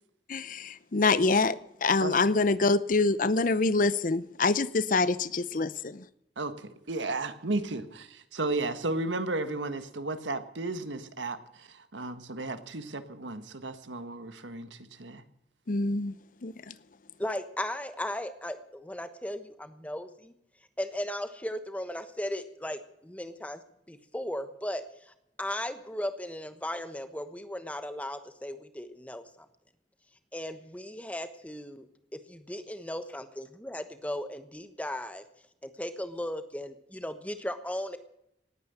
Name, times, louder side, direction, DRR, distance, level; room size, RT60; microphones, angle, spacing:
voice 1, 0.3-6.0 15.7-16.1 16.4-16.7, left 3 dB, 45° left, 17 dB, 0.7 m, -26 dB
voice 2, 6.4-15.2, right 2 dB, 90° right, 10 dB, 1.5 m, -34 dB
voice 3, 17.2-20.3 20.8-23.6 23.9-25.1 25.4-29.5 30.3-31.9 32.1-35.2 35.6-38.0, left 1 dB, 10° left, 10 dB, 1.1 m, -36 dB
18.5 x 9.3 x 8.0 m, 0.79 s
head